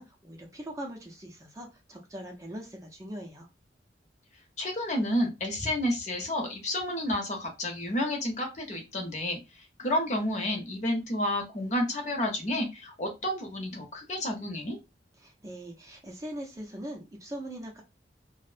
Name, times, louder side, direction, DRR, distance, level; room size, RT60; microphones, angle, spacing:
voice 1, 0.0-3.5 15.2-17.8, right 1 dB, 15° right, 0 dB, 0.4 m, -41 dB
voice 2, 4.6-14.8, left 1 dB, 40° left, 3 dB, 0.7 m, -30 dB
2.5 x 2.0 x 2.4 m, 0.25 s
head